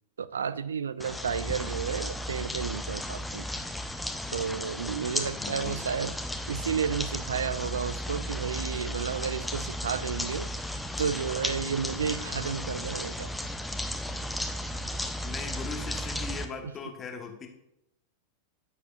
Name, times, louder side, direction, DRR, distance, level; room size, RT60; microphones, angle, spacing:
voice 1, 0.2-3.5 4.3-6.1 6.5-13.3, right 7 dB, 70° right, 18 dB, 0.3 m, -32 dB
sound 1, 1.0-16.5, left 1 dB, 5° left, 0.6 m, -34 dB
voice 2, 5.3-5.8 15.2-17.5, left 5 dB, 25° left, 3 dB, 1.2 m, -39 dB
14.0 x 5.0 x 2.4 m, 0.81 s
figure-of-eight pair, 90°, 0 cm